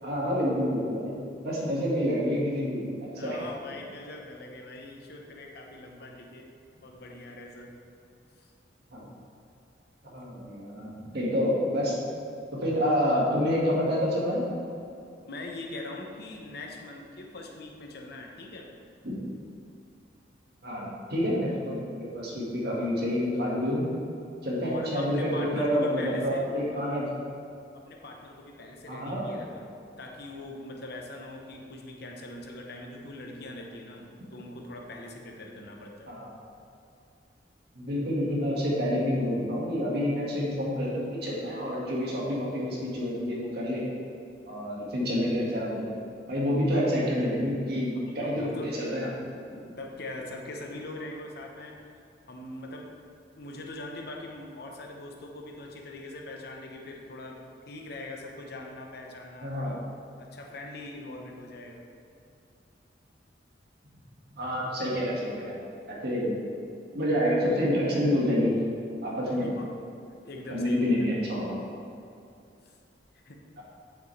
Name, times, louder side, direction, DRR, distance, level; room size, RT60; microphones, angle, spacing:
voice 1, 0.0-1.2 1.4-2.8 3.2-3.4 8.9-9.1 10.0-12.0 12.5-14.5 19.0-19.2 20.6-23.8 24.4-27.1 28.9-29.3 36.1-36.4 37.7-43.9 44.5-45.9 46.3-49.1 49.5-49.6 59.4-59.7 64.4-65.5 65.9-66.4 66.9-68.5 69.0-69.5 70.5-71.6, equal, 60° right, -5 dB, 1.8 m, -28 dB
voice 2, 3.2-6.5 6.8-7.7 8.4-8.5 15.2-18.7 24.6-26.5 26.7-26.9 27.7-29.7 30.0-36.1 48.1-48.7 49.8-51.8 52.3-52.9 53.4-57.4 57.7-59.9 60.2-61.9 69.4-69.7 70.2-71.1 72.6-72.8 73.1-73.4, left 2 dB, 65° left, 1 dB, 1.0 m, -42 dB
8.1 x 6.9 x 3.3 m, 2.5 s
head